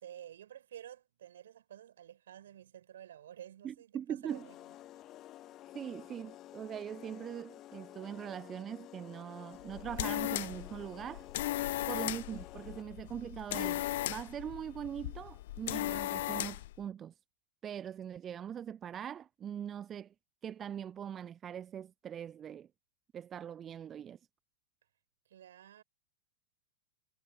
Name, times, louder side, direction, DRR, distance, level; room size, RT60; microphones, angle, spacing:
voice 1, 0.0-4.6 11.7-12.1 25.3-25.8, right 10 dB, 65° right, 7.5 m, -51 dB
voice 2, 3.6-4.5 5.7-11.3 11.9-17.1 17.6-20.1 20.4-22.7 23.1-24.2, right 9 dB, 25° right, 0.4 m, -42 dB
sound 1, 4.3-13.0, left 14 dB, 35° left, 1.1 m, -52 dB
sound 2, 9.6-16.8, left 16 dB, 55° left, 0.7 m, -37 dB
figure-of-eight pair, 95°, 0 cm